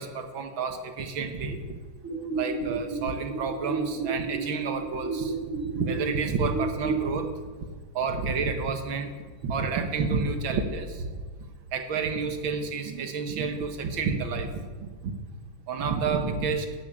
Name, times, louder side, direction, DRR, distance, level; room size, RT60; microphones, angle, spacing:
voice 1, 0.0-1.8 2.3-5.3 5.7-7.3 8.0-9.1 9.4-11.1 11.7-15.1 15.7-16.7, right 4 dB, 70° right, 6 dB, 1.9 m, -29 dB
sound 1, 2.0-7.0, right 4 dB, 35° right, 4.1 m, -32 dB
13.0 x 7.0 x 8.8 m, 1.5 s
omnidirectional pair, 2.4 m